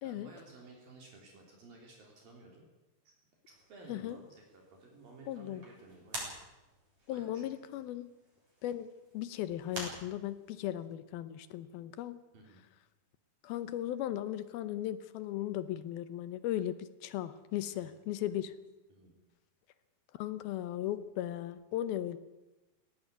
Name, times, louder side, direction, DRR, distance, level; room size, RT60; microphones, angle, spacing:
voice 1, 0.0-2.7 3.0-3.1 3.5-6.3 7.1-7.6 12.3-12.6 17.7-17.9 18.9-19.1, right 3 dB, 65° right, 1 dB, 5.1 m, -55 dB
sound 1, 3.5-10.7, right 1 dB, 35° right, 8.5 m, -49 dB
voice 2, 5.3-5.6 7.1-8.1 8.6-8.9 9.1-12.2 13.4-18.5 20.2-22.2, left 12 dB, 80° left, 14 dB, 2.6 m, -37 dB
18.5 x 18.0 x 9.4 m, 1.1 s
omnidirectional pair, 4.5 m